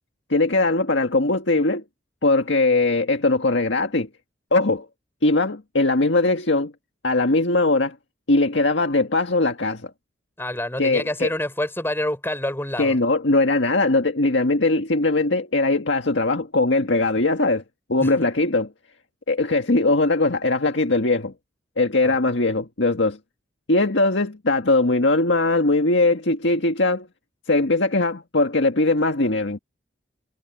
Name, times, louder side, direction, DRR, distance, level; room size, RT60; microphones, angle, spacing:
voice 1, 0.3-1.8 2.2-4.1 4.5-4.9 5.2-6.7 7.0-8.0 8.3-9.9 10.8-11.3 12.8-17.6 17.9-18.7 19.3-21.3 21.8-23.2 23.7-27.1 27.5-29.6, left 2 dB, 80° left, 1.7 m, -20 dB
voice 2, 10.4-13.0 18.0-18.3 22.0-22.2, left 1 dB, 10° left, 5.3 m, -27 dB
head